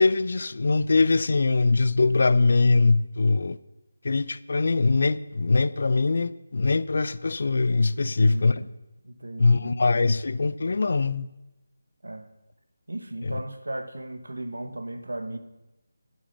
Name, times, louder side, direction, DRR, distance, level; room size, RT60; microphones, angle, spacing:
voice 1, 0.0-3.6 4.0-8.5 9.4-11.3 13.2-13.4, left 3 dB, 60° left, 0.5 m, -22 dB
voice 2, 8.0-8.7 9.0-9.7 12.0-12.3 12.9-15.4, right 1 dB, 85° right, 1.3 m, -36 dB
9.9 x 9.4 x 6.7 m
figure-of-eight pair, 160°, 0 cm